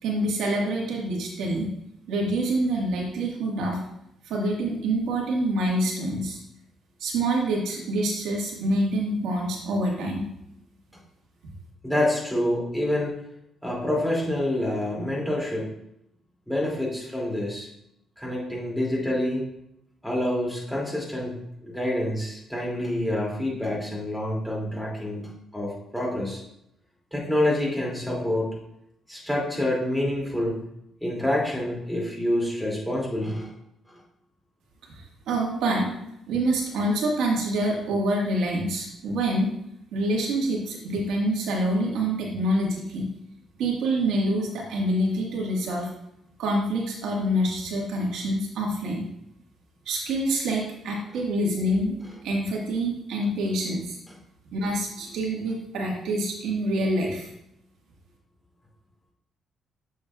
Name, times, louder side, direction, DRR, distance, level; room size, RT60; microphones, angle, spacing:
voice 1, 0.0-1.7 2.1-3.8 4.2-6.4 7.0-10.2 35.3-35.9 36.3-39.5 39.9-43.1 43.6-45.9 46.4-49.0 49.8-52.0 52.2-54.0 54.5-57.3, right 1 dB, 85° right, -1 dB, 1.6 m, -26 dB
voice 2, 11.8-13.1 13.6-15.7 16.5-17.7 18.2-19.4 20.0-21.3 21.6-26.4 27.1-28.5 29.1-30.6 31.0-33.5, left 1 dB, 5° left, -4 dB, 2.5 m, -27 dB
7.3 x 6.2 x 2.4 m, 0.79 s
cardioid pair, 90°, 0 cm